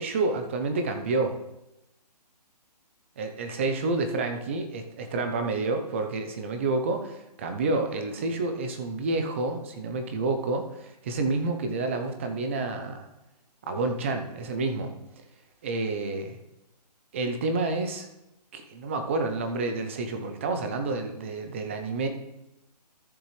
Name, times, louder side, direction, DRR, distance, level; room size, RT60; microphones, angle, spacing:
voice 1, 0.0-1.4 3.2-13.1 13.7-14.9 15.6-16.4 17.1-18.1 18.5-22.1, right 3 dB, 20° right, 6 dB, 0.7 m, -29 dB
14.0 x 6.5 x 3.2 m, 0.92 s
hypercardioid pair, 170°, 21 cm